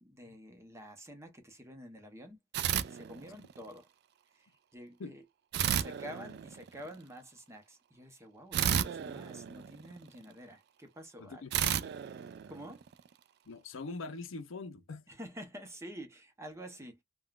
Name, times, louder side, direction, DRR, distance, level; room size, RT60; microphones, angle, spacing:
voice 1, 0.0-2.4 2.8-3.9 4.3-5.2 5.7-11.7 12.5-12.8 15.1-17.0, equal, 15° right, 0.7 m, -49 dB
sound 1, 2.5-3.7 5.5-6.9 8.5-10.2 11.5-13.1, right 9 dB, 55° right, 0.3 m, -33 dB
voice 2, 11.2-11.9 13.5-15.1, left 3 dB, 70° left, 0.5 m, -43 dB
3.5 x 2.2 x 2.3 m
head